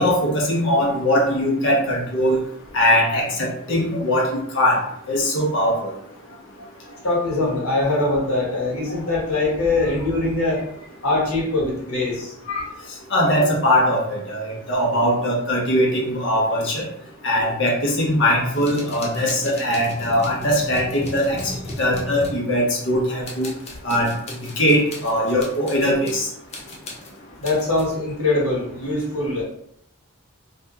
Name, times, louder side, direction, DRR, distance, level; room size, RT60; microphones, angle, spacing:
voice 1, 0.0-2.4 2.7-4.8 5.1-5.9 7.8-7.9 8.9-9.0 9.8-9.9 12.5-12.6 13.1-16.9 17.2-21.4 21.8-23.5 23.8-24.1 24.6-26.3, equal, 55° left, -2 dB, 0.9 m, -21 dB
voice 2, 7.0-10.6 11.0-12.3 27.4-29.4, left 2 dB, 75° left, -4 dB, 1.4 m, -22 dB
sound 1, 18.5-22.9 23.2-26.2 26.5-27.9, left 2 dB, 30° left, 0.5 m, -36 dB
2.7 x 2.6 x 3.5 m, 0.72 s
head